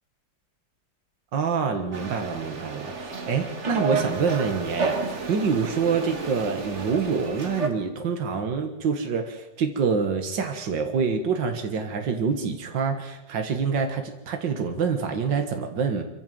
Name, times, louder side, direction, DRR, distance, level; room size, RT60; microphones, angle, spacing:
voice 1, 1.3-16.0, right 5 dB, 80° right, 5 dB, 2.3 m, -26 dB
sound 1, 1.9-7.7, right 4 dB, 40° right, 2.1 m, -31 dB
25.0 x 14.5 x 7.6 m, 0.96 s
omnidirectional pair, 2.0 m